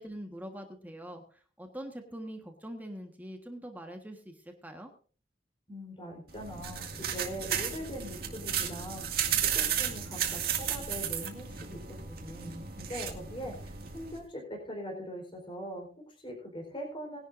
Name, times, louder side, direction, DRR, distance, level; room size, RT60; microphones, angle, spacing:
voice 1, 0.0-4.9, equal, 10° right, 4 dB, 1.4 m, -43 dB
voice 2, 5.7-11.8 12.0-17.2, equal, 30° left, 0 dB, 4.3 m, -42 dB
sound 1, 6.3-14.2, right 8 dB, 60° right, 2.0 m, -34 dB
20.0 x 11.0 x 2.6 m, 0.41 s
head